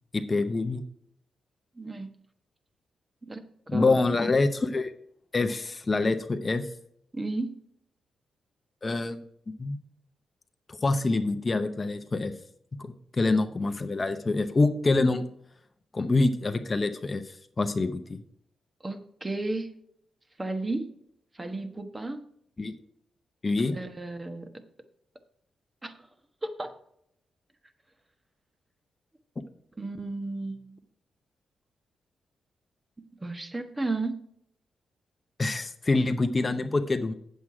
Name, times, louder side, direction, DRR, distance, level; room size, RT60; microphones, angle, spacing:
voice 1, 0.1-0.8 3.7-4.9 5.3-6.7 8.8-9.8 10.7-12.3 12.8-15.3 15.9-18.2 22.6-22.7 23.4-23.8 35.4-37.1, left 3 dB, 30° left, 8 dB, 0.7 m, -26 dB
voice 2, 1.8-2.2 3.2-3.4 3.7-4.0 7.1-7.6 18.8-19.7 20.4-20.9 21.3-22.2 23.7-24.5 25.8-25.9 26.4-26.7 29.8-30.8 33.2-34.3, right 2 dB, 20° right, 9 dB, 1.2 m, -33 dB
8.0 x 7.5 x 4.7 m, 0.71 s
cardioid pair, 80°, 0 cm